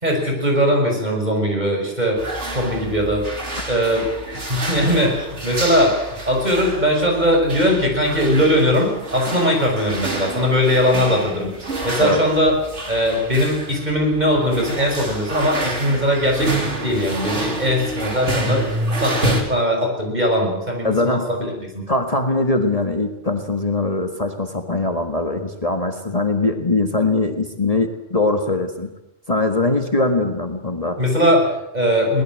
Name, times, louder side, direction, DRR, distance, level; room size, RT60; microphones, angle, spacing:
voice 1, 0.0-2.2 2.5-3.4 3.7-4.0 4.3-6.0 6.3-12.6 12.9-16.5 16.8-18.7 19.0-21.8 31.0-32.2, equal, 40° right, 1 dB, 6.5 m, -20 dB
sound 1, 2.2-19.4, right 1 dB, 80° right, 3.7 m, -28 dB
voice 2, 20.8-21.3 21.9-28.9 29.3-31.0, left 2 dB, 30° left, 5 dB, 1.9 m, -21 dB
22.5 x 20.0 x 7.7 m, 0.88 s
omnidirectional pair, 1.2 m